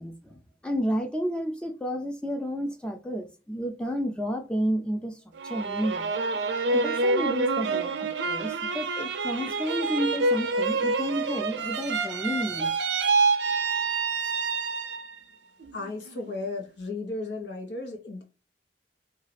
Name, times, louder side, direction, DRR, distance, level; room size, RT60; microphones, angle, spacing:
voice 1, 0.0-5.2 5.4-6.1 6.7-12.8, equal, 5° left, 0.4 m, -31 dB
sound 1, 5.4-15.2 15.6-16.3, right 3 dB, 80° right, 0.5 m, -27 dB
voice 2, 15.7-18.2, left 3 dB, 75° left, 1.0 m, -35 dB
3.6 x 2.4 x 3.2 m
head